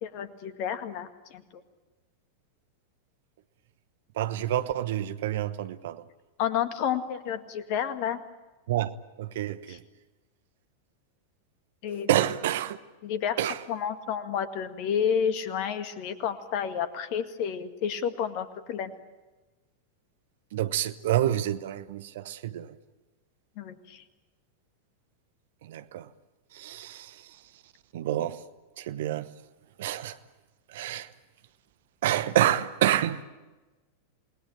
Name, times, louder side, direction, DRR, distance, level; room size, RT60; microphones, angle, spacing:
voice 1, 0.0-1.6 6.4-8.2 9.7-9.8 11.8-12.1 13.0-13.4 13.7-18.9 23.6-24.0, left 8 dB, 45° left, 2.0 m, -30 dB
voice 2, 4.2-6.0 8.7-8.9 9.2-9.8 12.1-12.8 13.4-13.6 20.5-22.7 25.6-26.1 26.5-27.1 27.9-28.4 28.8-29.3 29.8-30.2 30.7-31.1 32.0-33.2, right 12 dB, 55° right, 1.0 m, -28 dB
28.5 x 20.0 x 8.7 m
figure-of-eight pair, 90°, 0 cm